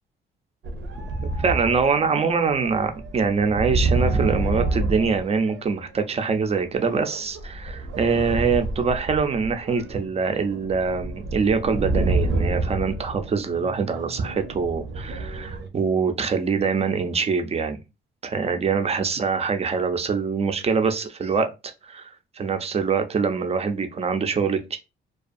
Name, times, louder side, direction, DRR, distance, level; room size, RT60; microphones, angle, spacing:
sound 1, 0.6-6.0 6.8-15.7, right 2 dB, 75° right, 0.6 m, -28 dB
voice 1, 1.2-17.8 18.2-21.5 21.8-22.0 22.4-24.8, right 5 dB, 30° right, 7 dB, 0.5 m, -24 dB
2.5 x 2.3 x 2.4 m, 0.26 s
cardioid pair, 90°, 20 cm